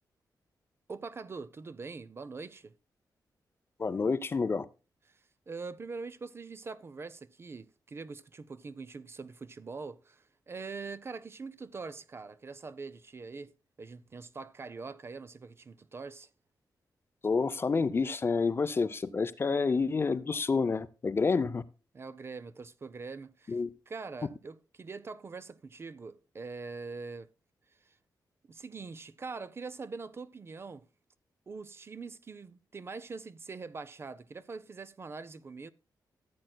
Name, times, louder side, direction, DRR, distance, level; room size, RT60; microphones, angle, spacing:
voice 1, 0.9-2.7 5.5-13.5 13.8-16.3 21.9-23.6 23.9-27.3 27.8-27.9 28.5-30.9 31.5-35.7, right 4 dB, 35° right, 0.4 m, -43 dB
voice 2, 3.8-4.7 17.2-21.6 23.5-23.7, left 4 dB, 30° left, 0.5 m, -29 dB
14.5 x 7.7 x 2.2 m
wide cardioid pair, 130°, 8 cm